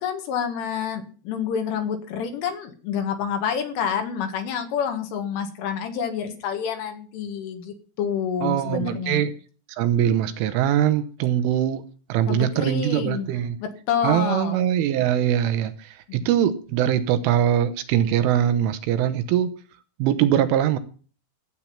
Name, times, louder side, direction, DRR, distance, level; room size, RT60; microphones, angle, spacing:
voice 1, 0.0-9.2 12.3-13.3 13.6-14.6 16.1-16.3, left 7 dB, 70° left, 4.2 m, -28 dB
voice 2, 8.4-9.3 9.7-11.8 12.1-13.6 14.0-19.5 20.0-20.8, right 10 dB, 80° right, 3.2 m, -22 dB
18.0 x 8.4 x 5.7 m
omnidirectional pair, 6.0 m